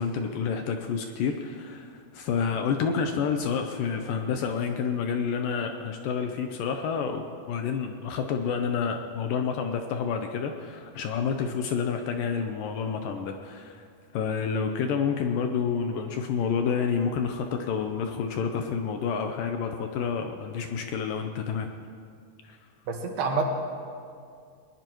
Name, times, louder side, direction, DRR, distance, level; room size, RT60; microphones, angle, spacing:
voice 1, 0.0-13.9 14.1-21.7 22.4-22.6, left 6 dB, 75° left, 5 dB, 2.1 m, -29 dB
voice 2, 22.9-23.4, right 4 dB, 80° right, 2 dB, 3.6 m, -27 dB
21.0 x 20.0 x 3.1 m, 2.3 s
omnidirectional pair, 4.6 m